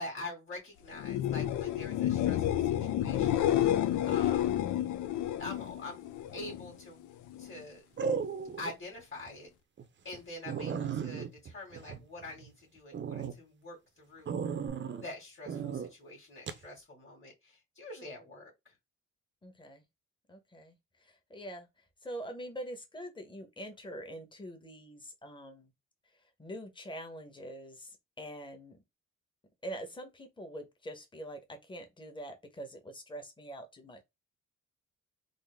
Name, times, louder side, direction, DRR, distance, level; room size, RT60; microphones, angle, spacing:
voice 1, 0.0-3.5 4.1-4.7 5.4-6.1 6.3-7.1 7.4-7.8 8.6-9.5 10.0-14.4 14.9-18.7, left 2 dB, 35° left, 2.0 m, -45 dB
sound 1, 0.9-6.7 7.0-7.6 14.7-14.8, left 12 dB, 80° left, 0.5 m, -30 dB
voice 2, 3.9-4.3 19.4-19.8 20.3-20.7 21.0-21.7 22.0-25.7 26.4-28.8 29.6-34.0, right 1 dB, 15° left, 1.1 m, -44 dB
sound 2, 6.4-6.8 8.0-8.7 9.2-9.3 9.8-9.9 10.1-10.2 10.5-12.5 12.9-13.3 14.3-15.1 15.5-15.9 16.5-16.6, right 6 dB, 40° right, 0.6 m, -35 dB
3.9 x 2.0 x 3.5 m
cardioid pair, 90°, 30 cm